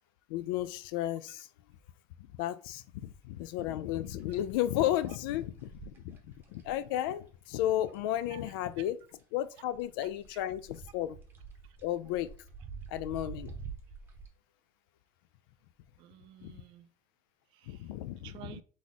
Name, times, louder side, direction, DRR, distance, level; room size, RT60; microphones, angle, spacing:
voice 1, 0.3-1.5 2.3-6.2 6.5-9.0 9.3-11.2 11.8-12.3 12.9-13.5 16.4-16.5 17.7-18.3, left 13 dB, 85° left, 0.4 m, -33 dB
sound 1, 4.0-8.8 9.1-14.3, right 5 dB, 20° right, 0.8 m, -48 dB
voice 2, 16.0-16.9 17.5-18.6, right 13 dB, 50° right, 0.4 m, -52 dB
3.8 x 3.1 x 4.0 m
cardioid pair, 165°, 11 cm